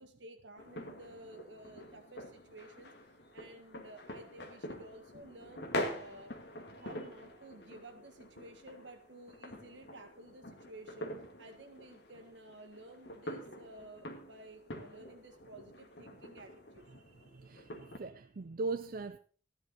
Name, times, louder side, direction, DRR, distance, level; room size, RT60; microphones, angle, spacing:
voice 1, 0.0-2.9 3.3-6.3 6.8-11.1 11.4-16.9, right 1 dB, 70° right, 1.8 m, -53 dB
sound 1, 0.6-18.0, left 1 dB, 65° left, 1.9 m, -45 dB
voice 2, 16.9-19.2, right 3 dB, 50° right, 0.5 m, -40 dB
14.5 x 10.5 x 4.1 m
head